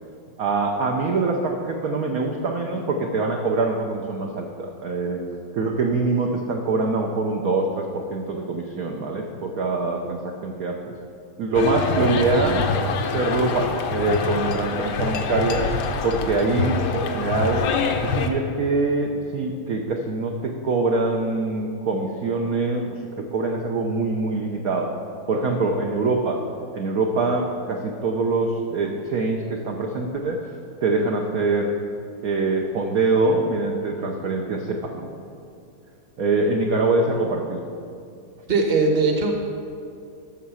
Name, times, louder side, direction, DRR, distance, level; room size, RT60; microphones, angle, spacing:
voice 1, 0.4-5.2 5.5-10.9 11.4-15.7 16.0-17.6 18.0-23.0 23.3-24.9 25.3-26.4 26.7-30.5 30.8-31.7 32.2-35.1 36.2-37.6, right 3 dB, 65° right, 1 dB, 0.9 m, -24 dB
sound 1, 11.5-18.3, left 4 dB, 65° left, 1.1 m, -25 dB
voice 2, 38.5-39.5, right 3 dB, 30° right, 2 dB, 0.9 m, -20 dB
13.0 x 6.3 x 5.7 m, 2.5 s
omnidirectional pair, 2.4 m